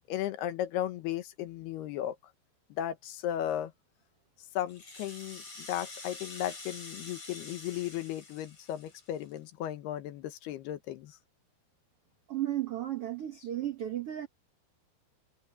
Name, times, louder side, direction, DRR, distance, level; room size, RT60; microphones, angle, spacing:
voice 1, 0.1-2.2 2.7-3.7 4.5-11.2, left 12 dB, 70° left, 3.0 m, -35 dB
Rattle (instrument), 4.6-9.4, left 3 dB, 35° left, 7.8 m, -47 dB
voice 2, 12.3-14.3, right 12 dB, 85° right, 1.2 m, -34 dB
omnidirectional pair, 5.0 m